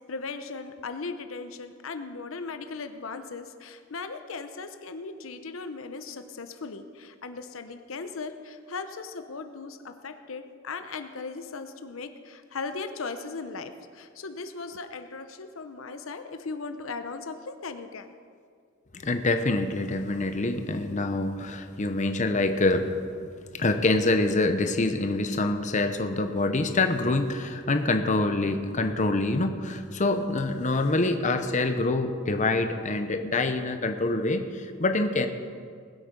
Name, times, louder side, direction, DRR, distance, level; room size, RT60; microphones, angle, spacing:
voice 1, 0.1-18.1, left 4 dB, 75° left, 8 dB, 0.8 m, -38 dB
voice 2, 18.9-22.9 23.5-35.3, left 2 dB, 35° left, 7 dB, 0.8 m, -26 dB
20.0 x 8.3 x 5.3 m, 2.1 s
head